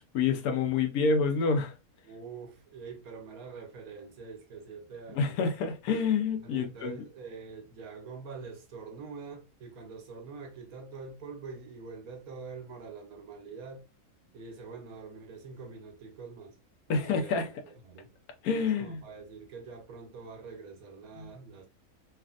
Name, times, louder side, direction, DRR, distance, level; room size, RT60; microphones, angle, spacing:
voice 1, 0.0-1.7 5.1-7.1 16.9-17.5 18.4-19.0 21.2-21.3, left 5 dB, 80° left, 1.1 m, -28 dB
voice 2, 2.0-5.4 6.4-13.8 14.3-16.6 16.9-18.2 18.6-21.7, right 4 dB, 75° right, 1.2 m, -45 dB
3.3 x 2.4 x 2.3 m
omnidirectional pair, 1.6 m